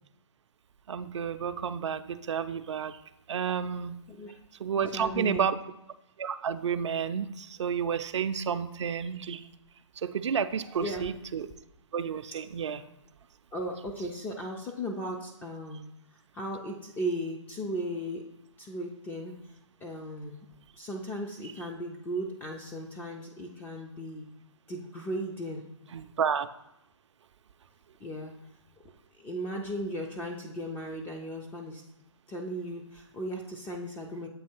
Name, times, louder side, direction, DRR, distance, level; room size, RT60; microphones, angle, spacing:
voice 1, 0.9-2.9 3.3-4.0 4.6-5.6 6.2-9.4 10.0-11.5 11.9-12.8 25.9-26.5, right 7 dB, 70° right, 10 dB, 0.4 m, -31 dB
voice 2, 4.7-5.5 10.8-11.1 13.5-15.8 16.3-18.2 18.6-19.3 19.8-20.5 20.8-24.2 24.7-25.6 28.0-28.3 29.2-31.8 32.3-34.3, equal, 10° left, 0 dB, 0.3 m, -36 dB
7.8 x 2.8 x 4.4 m, 0.86 s
hypercardioid pair, 135°, 16 cm